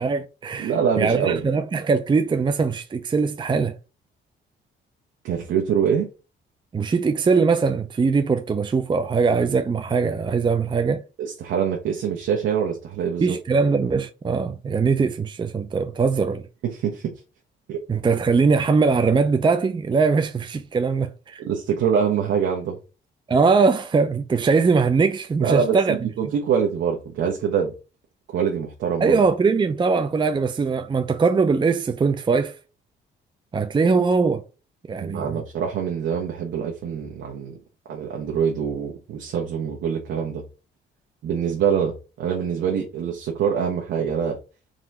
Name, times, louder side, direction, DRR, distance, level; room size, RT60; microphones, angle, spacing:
voice 1, 0.0-3.7 6.7-11.0 13.2-16.5 17.9-21.4 23.3-26.1 29.0-32.6 33.5-34.4 34.9-35.4, right 4 dB, 25° right, 0.5 m, -21 dB
voice 2, 0.6-1.5 5.2-6.1 11.2-13.4 16.6-17.1 17.7-17.8 21.4-22.8 25.4-27.7 28.3-29.2 35.0-37.6 37.9-40.4 41.2-44.4, right 7 dB, 75° right, 1.1 m, -24 dB
3.8 x 3.0 x 4.2 m
cardioid pair, 90°, 20 cm